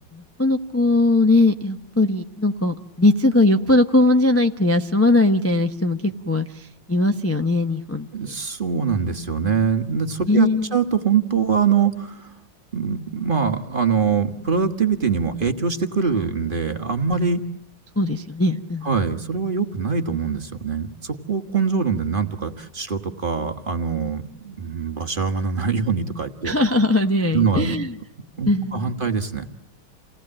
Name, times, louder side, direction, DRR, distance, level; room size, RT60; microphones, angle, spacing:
voice 1, 0.1-8.1 10.3-10.8 18.0-18.9 26.4-27.9 28.5-28.9, left 2 dB, 15° left, 4 dB, 0.5 m, -20 dB
voice 2, 8.1-12.3 12.7-17.4 18.8-26.5 27.3-27.7 28.4-29.5, right 6 dB, 30° right, 7 dB, 1.4 m, -23 dB
28.5 x 19.0 x 8.7 m, 0.80 s
omnidirectional pair, 2.0 m